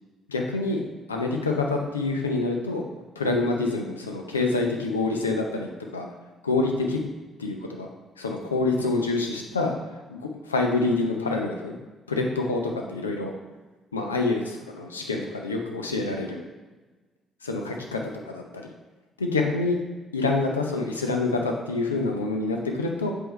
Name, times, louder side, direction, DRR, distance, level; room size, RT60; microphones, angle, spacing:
voice 1, 0.3-0.8 1.1-2.8 3.2-6.1 6.4-7.0 7.4-7.9 8.2-9.7 10.1-10.2 10.4-11.7 12.1-12.6 12.9-13.3 13.9-16.4 17.4-18.7 19.2-19.8 20.1-23.1, left 3 dB, 85° left, 2 dB, 0.6 m, -26 dB
7.7 x 4.8 x 3.1 m, 1.2 s
figure-of-eight pair, 45°, 0 cm